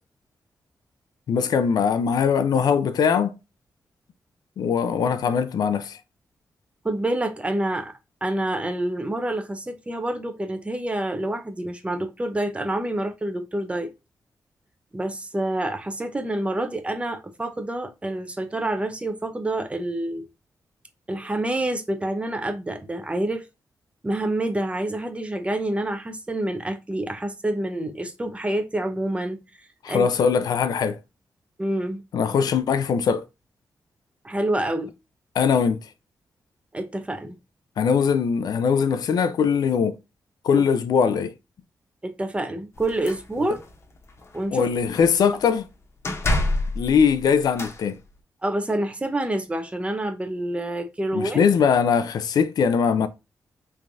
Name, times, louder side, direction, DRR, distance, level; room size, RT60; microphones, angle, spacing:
voice 1, 1.3-3.4 4.6-6.0 29.8-31.0 32.1-33.2 35.3-35.9 37.8-40.0 40.4-41.3 44.5-45.7 46.8-48.0 51.1-53.1, left 6 dB, 80° left, 0.4 m, -21 dB
voice 2, 6.8-7.9 8.2-13.9 14.9-20.2 21.1-23.4 24.0-29.4 29.9-30.1 31.6-32.0 34.2-34.9 36.7-37.4 42.0-43.6 44.3-44.7 48.4-51.4, right 1 dB, 20° right, 0.6 m, -27 dB
sound 1, 42.8-43.7 44.1-44.4 44.7-45.3 46.0-47.8, left 2 dB, 40° left, 0.8 m, -28 dB
3.4 x 3.2 x 2.6 m
cardioid pair, 100°, 7 cm